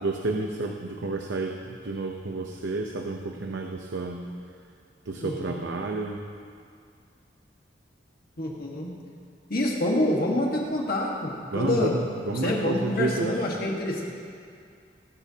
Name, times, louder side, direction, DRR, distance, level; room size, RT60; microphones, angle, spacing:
voice 1, 0.0-4.3 5.1-6.2 11.5-13.4, right 2 dB, 80° right, 2 dB, 0.8 m, -30 dB
voice 2, 5.2-5.5 8.4-8.9 9.5-11.9 12.3-14.1, left 1 dB, 55° left, -2 dB, 1.6 m, -27 dB
21.0 x 10.0 x 2.8 m, 2.3 s
head